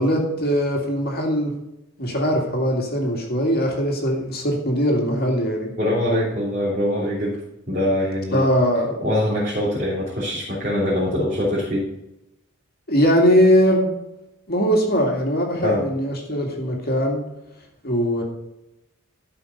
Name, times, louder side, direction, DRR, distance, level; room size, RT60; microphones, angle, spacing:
voice 1, 0.0-1.5 2.0-5.7 8.3-9.0 12.9-13.9 14.5-17.2 17.8-18.2, equal, 45° left, 1 dB, 2.1 m, -20 dB
voice 2, 5.8-7.4 7.7-8.5 9.0-11.8 15.6-15.8, left 1 dB, 40° right, -8 dB, 3.3 m, -23 dB
12.5 x 5.7 x 5.3 m, 0.90 s
head